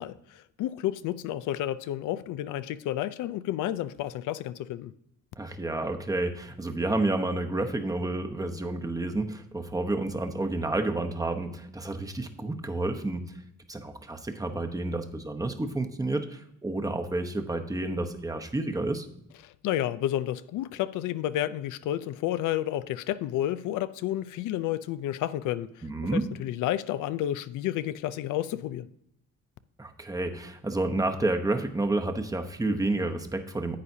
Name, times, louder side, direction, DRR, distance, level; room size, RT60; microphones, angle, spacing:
voice 1, 0.0-4.9 19.4-25.8 26.1-28.9, left 13 dB, 85° left, 14 dB, 0.5 m, -31 dB
voice 2, 5.4-13.2 13.7-19.1 25.8-26.3 29.8-33.8, right 2 dB, 10° right, 5 dB, 0.9 m, -30 dB
10.5 x 8.3 x 2.7 m, 0.77 s
cardioid pair, 90°, 30 cm